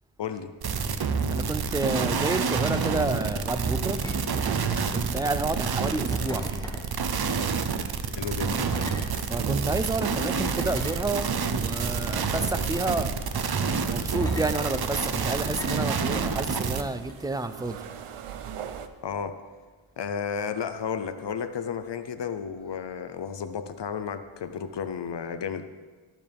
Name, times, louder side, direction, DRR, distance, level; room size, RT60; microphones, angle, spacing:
voice 1, 0.2-0.5 8.2-8.6 19.0-19.3 20.0-25.6, left 7 dB, 55° left, 10 dB, 0.7 m, -32 dB
sound 1, 0.6-16.8, right 5 dB, 50° right, 0.8 m, -28 dB
voice 2, 1.1-4.0 4.9-6.7 9.3-13.1 13.7-17.8, right 2 dB, 10° right, 11 dB, 0.4 m, -30 dB
sound 2, 4.0-4.4 4.7-5.2 6.1-6.8 7.9-8.0 8.6-9.1 9.8-9.9 10.6-11.5 12.3-13.0 14.2-14.5 15.4-15.9 17.0-17.1, left 1 dB, 5° left, 1.5 m, -39 dB
sound 3, 9.3-18.9, right 8 dB, 85° right, 0.8 m, -45 dB
12.5 x 12.0 x 3.5 m, 1.4 s
wide cardioid pair, 135°, 50 cm